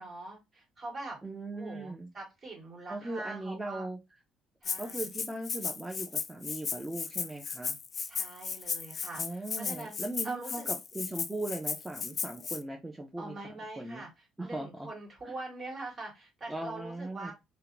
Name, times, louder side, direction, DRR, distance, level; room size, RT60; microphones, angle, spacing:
voice 1, 0.0-1.2 1.5-3.9 4.6-5.1 8.1-10.0 10.2-10.7 13.2-14.1 14.4-17.3, right 2 dB, 35° right, -1 dB, 1.8 m, -43 dB
voice 2, 1.2-2.1 2.9-4.0 4.8-7.8 9.2-14.0 14.4-14.9 15.3-15.4 16.5-17.3, right 2 dB, 10° right, 1 dB, 0.5 m, -39 dB
Rattle (instrument), 4.6-12.6, left 5 dB, 40° left, 0.3 m, -35 dB
2.8 x 2.1 x 2.5 m, 0.22 s
supercardioid pair, 85°, 0 cm